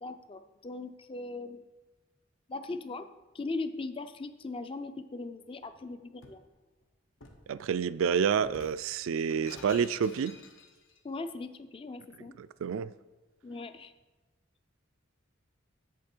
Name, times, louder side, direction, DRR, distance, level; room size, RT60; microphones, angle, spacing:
voice 1, 0.0-1.6 2.5-3.1 3.3-6.4 11.0-12.3 13.4-13.9, left 3 dB, 25° left, 10 dB, 0.4 m, -39 dB
Shatter, 5.6-6.5 7.2-7.5 8.4-11.0, left 3 dB, 70° left, 1.0 m, -52 dB
voice 2, 7.5-10.3 12.4-12.9, right 7 dB, 80° right, 16 dB, 0.3 m, -29 dB
8.4 x 7.2 x 4.4 m, 1.2 s
head